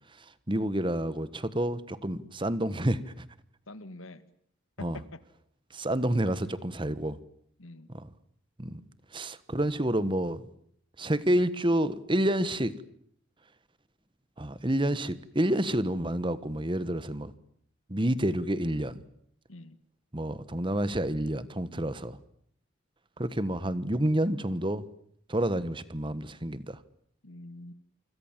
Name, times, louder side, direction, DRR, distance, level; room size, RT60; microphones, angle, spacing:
voice 1, 0.5-3.3 4.8-5.0 5.7-7.2 7.9-8.1 8.6-8.8 9.1-10.4 11.0-12.7 14.4-17.3 17.9-19.0 20.1-22.2 23.2-24.9 25.3-26.8, right 1 dB, 25° right, 15 dB, 1.3 m, -29 dB
voice 2, 3.7-4.2 4.8-5.2 7.6-7.9 19.5-19.8 27.2-27.7, left 2 dB, 85° left, 14 dB, 1.9 m, -45 dB
28.5 x 25.5 x 7.5 m, 0.66 s
head